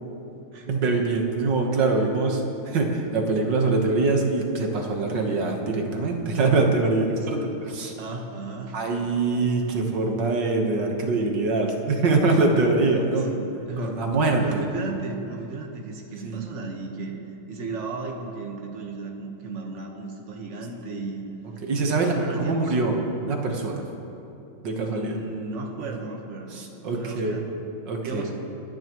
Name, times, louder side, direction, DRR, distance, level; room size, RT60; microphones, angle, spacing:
voice 1, 0.7-7.9 8.7-13.3 13.8-14.6 16.2-16.4 21.6-22.9 23.3-23.8 24.6-25.2 25.8-25.9 26.5-27.4 27.9-28.2, right 3 dB, 55° right, 1 dB, 1.8 m, -24 dB
voice 2, 7.1-7.5 8.0-8.9 13.2-14.1 14.4-17.2 17.5-21.2 21.8-22.7 24.9-27.6 28.0-28.4, right 3 dB, 40° right, 1 dB, 1.4 m, -35 dB
25.5 x 10.5 x 3.1 m, 3.0 s
omnidirectional pair, 2.4 m